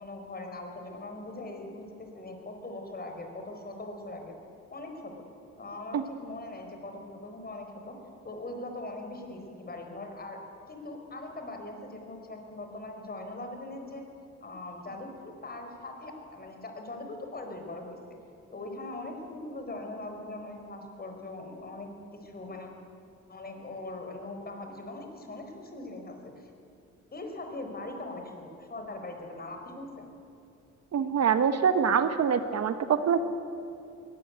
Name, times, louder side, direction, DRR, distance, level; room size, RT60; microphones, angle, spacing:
voice 1, 0.0-4.3 4.7-5.2 5.6-8.0 8.2-10.4 10.7-14.0 14.4-18.0 18.5-22.7 23.3-26.5 27.1-30.1, left 2 dB, 30° left, 4 dB, 4.7 m, -41 dB
voice 2, 30.9-33.2, right 7 dB, 55° right, 10 dB, 1.3 m, -25 dB
22.0 x 17.5 x 9.5 m, 2.7 s
cardioid pair, 90°, 30 cm